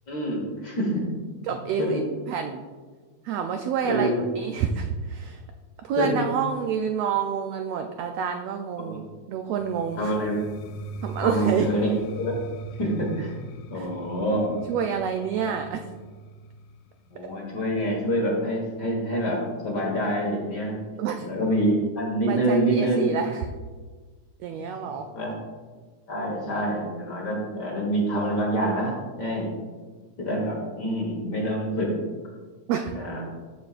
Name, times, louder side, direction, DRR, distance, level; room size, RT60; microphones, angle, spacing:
voice 1, 0.1-1.1 1.8-2.0 3.8-4.2 6.0-6.1 8.8-9.0 10.0-10.4 11.2-12.4 12.8-13.4 13.7-14.6 15.4-15.5 17.1-20.7 21.2-23.1 24.5-24.6 25.1-25.4 26.1-29.5 30.2-31.9 32.9-33.2, right 1 dB, 45° left, -2 dB, 1.6 m, -26 dB
voice 2, 1.5-2.0 2.3-2.6 3.2-5.4 5.8-10.1 11.0-11.7 13.7-13.9 14.5-16.0 17.2-17.3 21.0-21.3 22.3-23.5 24.4-25.1 32.7-33.0, right 7 dB, 85° right, 5 dB, 1.4 m, -28 dB
sound 1, 9.6-19.4, right 2 dB, 80° left, 1.6 m, -40 dB
14.0 x 6.4 x 2.5 m, 1.4 s
omnidirectional pair, 3.4 m